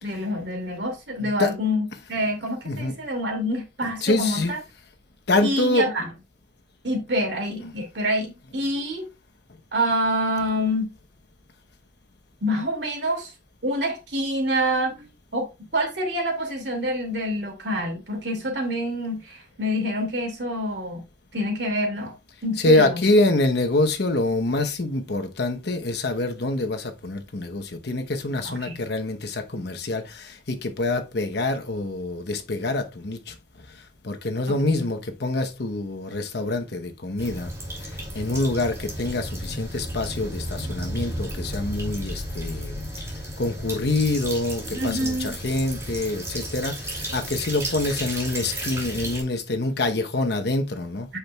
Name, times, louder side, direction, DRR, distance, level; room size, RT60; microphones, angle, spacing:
voice 1, 0.0-4.6 5.4-6.1 6.8-9.0 9.7-10.9 12.4-13.3 13.6-15.5 15.7-21.0 21.3-22.1 22.4-23.0 28.4-28.8 34.5-34.9 44.7-45.3, equal, 70° right, 2.5 m, -27 dB
voice 2, 1.2-1.5 2.7-2.9 4.0-4.5 5.3-5.9 22.6-33.3 34.0-37.5 38.1-42.8 43.4-51.1, left 2 dB, 65° left, 1.0 m, -25 dB
sound 1, 37.2-49.2, right 1 dB, 15° right, 2.6 m, -33 dB
8.4 x 6.0 x 2.3 m
head